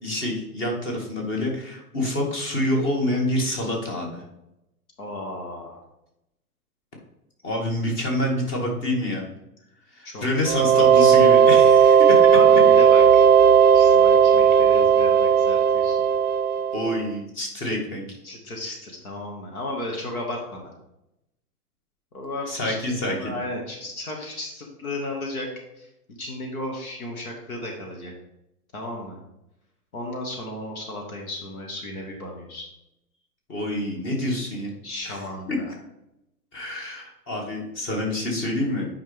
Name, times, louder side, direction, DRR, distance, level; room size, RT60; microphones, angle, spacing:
voice 1, 0.0-4.2 7.4-9.2 9.9-12.3 16.7-18.2 22.5-23.3 33.5-34.7 35.0-35.2 35.5-35.6 36.5-38.9, left 1 dB, 25° left, 0 dB, 2.1 m, -27 dB
voice 2, 5.0-5.8 10.0-10.3 12.3-13.3 13.7-16.1 18.2-20.7 22.1-22.8 23.1-28.1 28.7-29.2 29.9-32.6 34.8-35.7, left 1 dB, 65° left, 1 dB, 2.0 m, -34 dB
sound 1, 10.4-17.1, right 7 dB, 70° right, 0.5 m, -15 dB
8.9 x 5.1 x 3.5 m, 0.87 s
figure-of-eight pair, 110°, 46 cm